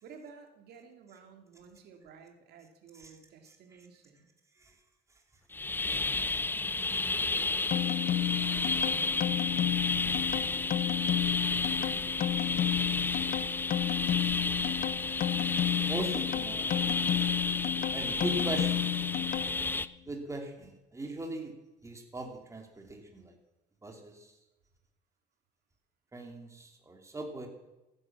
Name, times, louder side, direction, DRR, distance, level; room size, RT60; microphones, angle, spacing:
voice 1, 0.0-4.3, right 5 dB, 70° right, 5 dB, 2.4 m, -53 dB
sound 1, 5.5-19.9, left 3 dB, 10° left, 0.5 m, -32 dB
sound 2, 7.7-19.9, left 13 dB, 60° left, 0.8 m, -32 dB
voice 2, 15.8-16.8 17.9-19.2 20.1-21.6 21.8-23.4 23.8-24.3 26.1-27.5, right 2 dB, 15° right, 3 dB, 3.0 m, -39 dB
15.5 x 10.5 x 7.5 m, 1.0 s
cardioid pair, 110°, 17 cm